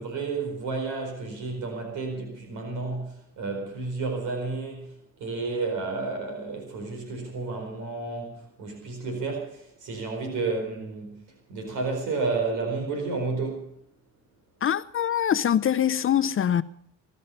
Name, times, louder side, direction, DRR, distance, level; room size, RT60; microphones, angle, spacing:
voice 1, 0.0-13.7, right 3 dB, 85° right, 4.6 m, -31 dB
voice 2, 14.6-16.6, left 9 dB, 45° left, 0.6 m, -23 dB
22.0 x 11.0 x 5.5 m
cardioid pair, 90°, 30 cm